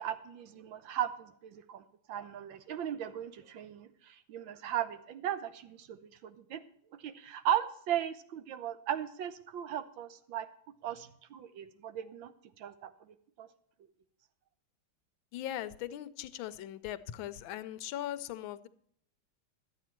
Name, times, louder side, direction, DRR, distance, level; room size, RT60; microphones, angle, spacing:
voice 1, 0.0-6.6 7.0-10.5 10.8-12.3 12.6-12.9 13.4-13.5, right 10 dB, 75° right, 12 dB, 1.4 m, -37 dB
voice 2, 15.3-18.7, left 12 dB, 80° left, 14 dB, 1.4 m, -39 dB
11.5 x 8.6 x 4.4 m, 0.64 s
omnidirectional pair, 2.2 m